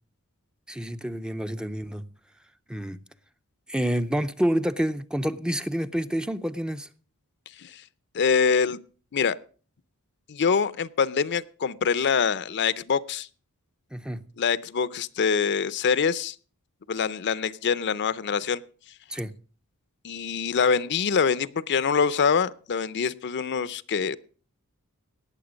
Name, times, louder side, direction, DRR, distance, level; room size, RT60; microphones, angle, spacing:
voice 1, 0.7-2.1 2.7-3.0 3.7-6.9 13.9-14.3 19.1-19.4, equal, 5° right, 0.5 m, -28 dB
voice 2, 8.1-8.8 9.1-9.4 10.3-13.3 14.4-16.4 16.9-18.6 20.0-24.2, left 6 dB, 50° left, 0.5 m, -25 dB
18.5 x 7.4 x 5.1 m
head